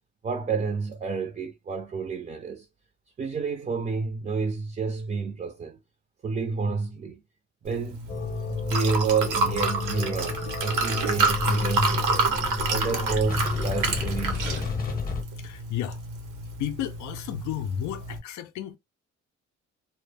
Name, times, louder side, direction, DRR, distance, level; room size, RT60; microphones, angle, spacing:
voice 1, 0.2-2.7 3.2-5.8 6.2-7.2 7.6-8.0 8.7-12.3 12.7-14.7, right 5 dB, 25° right, 0.4 m, -30 dB
Liquid, 7.6-18.2, right 3 dB, 85° right, 0.8 m, -29 dB
sound 1, 8.1-15.2, left 4 dB, 30° left, 0.8 m, -31 dB
voice 2, 15.4-16.0 16.6-18.8, left 10 dB, 70° left, 0.4 m, -33 dB
2.0 x 2.0 x 3.2 m
cardioid pair, 90°, 30 cm